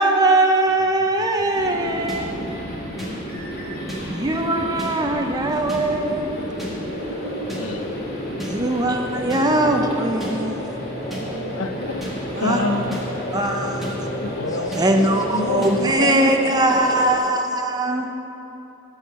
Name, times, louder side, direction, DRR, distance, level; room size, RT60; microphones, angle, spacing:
voice 1, 0.0-2.3 4.1-6.4 8.4-10.6 12.4-12.6 13.3-13.8 14.8-18.1, right 2 dB, 20° right, 3 dB, 0.6 m, -21 dB
sound 1, 0.7-15.9, equal, 15° left, 0.7 m, -38 dB
sound 2, 1.5-17.2, left 1 dB, 50° left, 2.3 m, -31 dB
voice 2, 1.6-2.6 2.9-3.3 4.1-4.7 5.8-6.3 6.9-7.5 7.9-8.1 9.6-9.7 10.3-10.6 11.1-11.7 12.3-13.0 13.3-13.9 14.8-15.4 16.0-16.4 18.0-18.1, right 2 dB, 65° right, -1 dB, 1.4 m, -35 dB
sound 3, 2.1-2.2 3.0-3.1 3.9-4.0 4.8-4.9 5.7-5.8 6.6-6.7 7.5-7.6 8.4-8.5 9.3-9.4 10.2-10.3 11.1-11.2 12.0-12.1 12.9-13.0 13.8-13.9 14.7-14.8 15.6-15.7, equal, ahead, 1.7 m, -33 dB
voice 3, 7.6-7.9 11.5-12.0 12.4-13.0 14.2-14.8 15.3-16.4, left 3 dB, 75° left, 8 dB, 0.6 m, -27 dB
13.5 x 4.6 x 6.7 m, 3.0 s
head